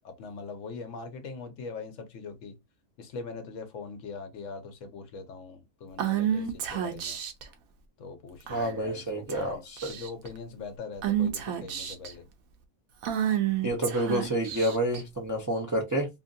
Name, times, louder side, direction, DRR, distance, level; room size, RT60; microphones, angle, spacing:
voice 1, 0.0-2.6 3.0-7.2 8.0-9.6 9.9-12.3, left 4 dB, 70° left, 1.0 m, -42 dB
Female speech woman speaking / Whispering, 6.0-7.4 8.5-8.9 9.3-9.5 9.8-10.3 11.0-12.1 13.0-15.0, right 10 dB, 80° right, 1.1 m, -30 dB
voice 2, 8.5-9.9 13.6-16.1, right 1 dB, 20° right, 0.4 m, -29 dB
2.8 x 2.6 x 2.5 m
omnidirectional pair, 1.4 m